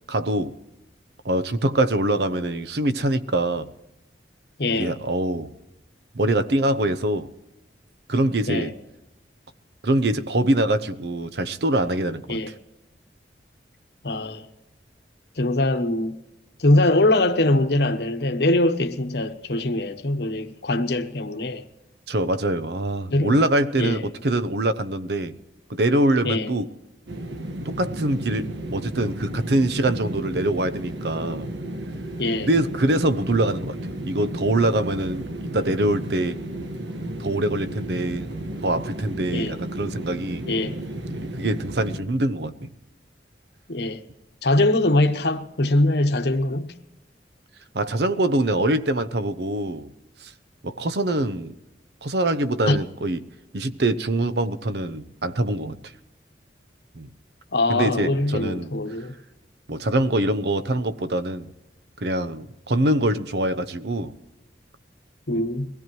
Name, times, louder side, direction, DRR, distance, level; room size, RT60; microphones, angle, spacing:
voice 1, 0.1-0.5 1.2-3.7 4.7-5.5 6.1-7.3 8.1-8.7 9.8-12.4 22.1-25.4 25.7-26.7 27.6-31.5 32.4-35.3 35.5-36.4 37.2-38.3 38.6-40.4 41.1-42.7 47.7-49.9 50.2-50.3 50.6-51.5 52.0-53.2 53.5-55.8 56.9-57.1 57.7-58.7 59.7-61.5 62.0-64.1, right 1 dB, 65° right, 0.8 m, -24 dB
voice 2, 4.6-4.9 8.5-8.7 12.3-12.5 14.0-14.5 15.4-16.2 16.6-21.6 23.1-23.3 23.8-24.0 26.2-26.5 32.2-32.5 39.3-39.5 40.5-40.8 43.7-44.0 44.4-46.7 52.7-52.8 57.5-59.1 65.3-65.7, left 2 dB, 65° left, 1.0 m, -22 dB
sound 1, 27.1-42.0, right 1 dB, 85° right, 1.4 m, -33 dB
22.5 x 17.0 x 3.1 m
head